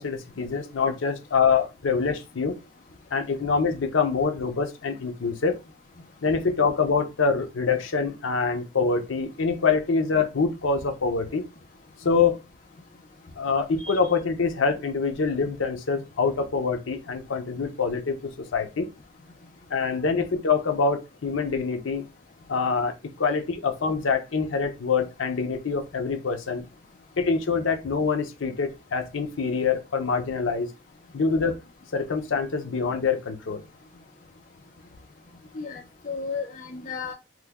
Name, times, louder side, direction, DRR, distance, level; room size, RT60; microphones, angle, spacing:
voice 1, 0.0-2.6 3.1-5.6 6.2-11.5 12.0-12.4 13.4-18.2 18.5-18.9 19.7-22.0 22.5-26.6 27.2-30.7 31.1-31.6 31.9-33.6, left 5 dB, 85° left, 0.6 m, -25 dB
voice 2, 35.5-37.1, left 5 dB, 40° left, 0.5 m, -34 dB
3.0 x 2.2 x 3.4 m
head